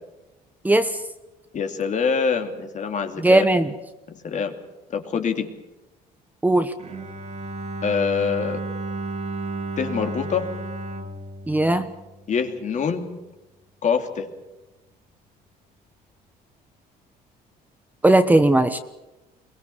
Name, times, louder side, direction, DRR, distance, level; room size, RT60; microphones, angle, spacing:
voice 1, 1.5-3.5 4.1-4.6 4.9-5.5 7.8-8.6 9.8-10.5 12.3-13.1 13.8-14.3, left 6 dB, 45° left, 6 dB, 2.7 m, -25 dB
voice 2, 3.2-3.7 6.4-6.7 11.5-11.9 18.0-18.8, right 1 dB, 10° right, 9 dB, 1.1 m, -17 dB
Bowed string instrument, 6.8-12.7, right 2 dB, 45° right, 2.8 m, -33 dB
23.0 x 20.0 x 7.1 m, 1.0 s
cardioid pair, 110°, 17 cm